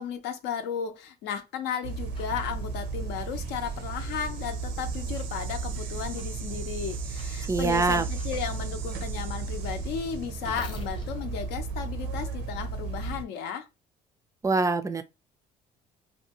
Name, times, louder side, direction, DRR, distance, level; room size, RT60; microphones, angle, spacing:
voice 1, 0.0-13.7, left 8 dB, 90° left, 0.6 m, -34 dB
sound 1, 1.8-13.2, right 4 dB, 85° right, 0.6 m, -34 dB
sound 2, 2.1-2.3 3.1-3.3 4.1-4.3 5.1-5.3 6.1-6.3 7.1-7.3 8.1-8.3 8.8-12.7, left 1 dB, 30° left, 0.8 m, -47 dB
voice 2, 7.5-8.1 14.4-15.0, right 3 dB, 20° right, 0.3 m, -24 dB
2.6 x 2.2 x 2.8 m
cardioid pair, 110°, 17 cm